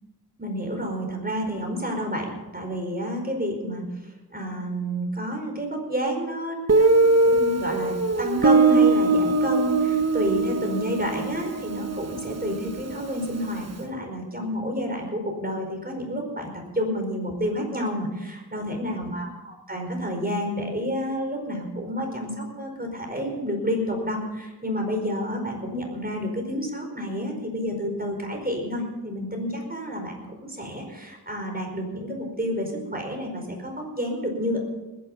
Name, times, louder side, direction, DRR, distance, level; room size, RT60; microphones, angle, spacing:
voice 1, 0.4-3.8 4.3-19.3 19.7-34.6, equal, 20° right, 2 dB, 4.8 m, -29 dB
Guitar, 6.7-13.3, right 3 dB, 40° right, 1.1 m, -21 dB
20.0 x 10.5 x 5.7 m, 1.1 s
wide cardioid pair, 65°, 40 cm